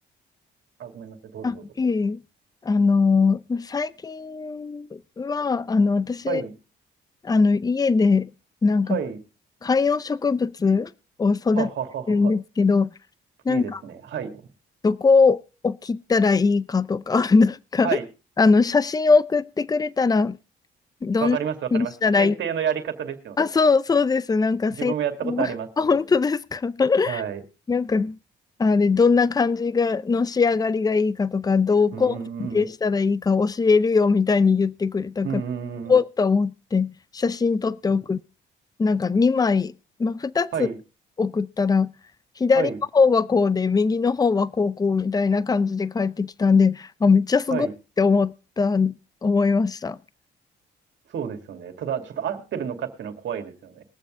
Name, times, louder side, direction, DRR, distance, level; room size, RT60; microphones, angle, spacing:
voice 1, 0.8-1.6 6.3-6.5 8.9-9.2 11.5-12.3 13.5-14.5 17.8-18.1 21.2-23.4 24.8-26.0 27.1-27.4 31.9-32.7 35.2-35.9 40.5-40.8 42.6-42.8 47.5-47.7 51.1-53.8, right 8 dB, 70° right, 2.4 m, -30 dB
voice 2, 1.4-2.2 2.6-6.4 7.2-8.3 8.6-9.0 9.6-10.9 11.2-11.7 12.1-12.9 13.5-13.8 14.8-18.0 18.4-20.4 21.0-21.4 21.7-22.3 23.4-24.9 25.2-25.5 25.8-27.2 27.7-28.2 28.6-35.3 35.9-38.2 38.8-39.7 40.0-40.7 41.2-41.9 42.4-47.7 48.0-48.9 49.2-50.0, left 4 dB, 20° left, 0.5 m, -21 dB
21.5 x 7.3 x 3.7 m
cardioid pair, 90°, 20 cm